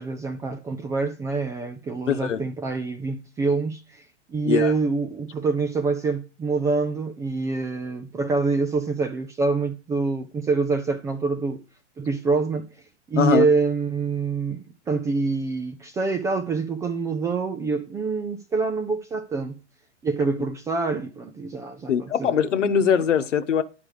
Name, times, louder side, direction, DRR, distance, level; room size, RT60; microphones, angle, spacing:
voice 1, 0.0-4.0 4.3-11.6 12.0-12.7 13.1-14.6 14.9-19.6 20.0-22.4, right 4 dB, 10° right, 0.3 m, -26 dB
voice 2, 2.1-2.4 4.4-4.7 13.2-13.5 21.9-23.6, left 8 dB, 80° left, 1.1 m, -21 dB
10.5 x 4.9 x 4.9 m
hypercardioid pair, 120°, 36 cm